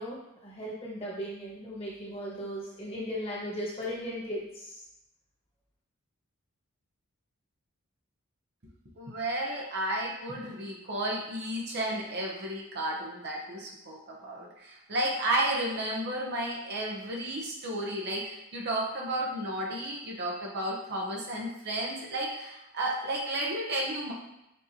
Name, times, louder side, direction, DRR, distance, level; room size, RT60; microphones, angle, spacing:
voice 1, 0.0-4.8, equal, 30° left, -6 dB, 1.4 m, -37 dB
voice 2, 9.0-24.1, right 1 dB, 50° right, -2 dB, 0.9 m, -32 dB
6.2 x 3.0 x 2.8 m, 0.89 s
head